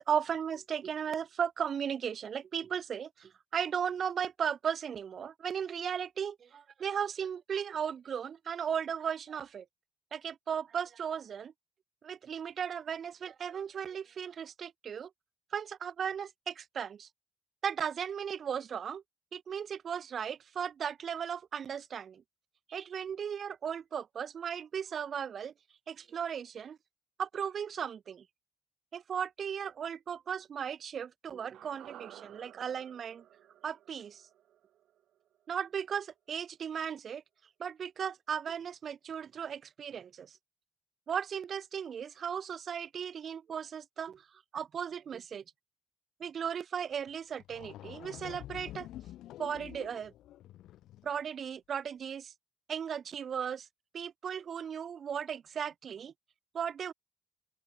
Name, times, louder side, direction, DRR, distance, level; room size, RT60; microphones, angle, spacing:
voice 1, 0.0-9.6 10.1-11.5 12.0-15.1 15.5-17.1 17.6-19.0 19.3-22.2 22.7-25.5 25.9-26.8 27.2-28.2 28.9-33.2 33.6-34.2 35.5-37.2 37.6-40.3 41.1-44.2 44.5-45.4 46.2-48.9 49.4-50.1 51.0-52.3 52.7-53.7 53.9-56.1 56.5-56.9, right 8 dB, 45° right, 0.8 m, -36 dB
sound 1, 31.5-35.8 36.1-36.2, right 12 dB, 70° right, 2.7 m, -55 dB
sound 2, 47.1-47.2 47.4-51.2, left 14 dB, 85° left, 0.5 m, -48 dB
open air
cardioid pair, 145°, 0 cm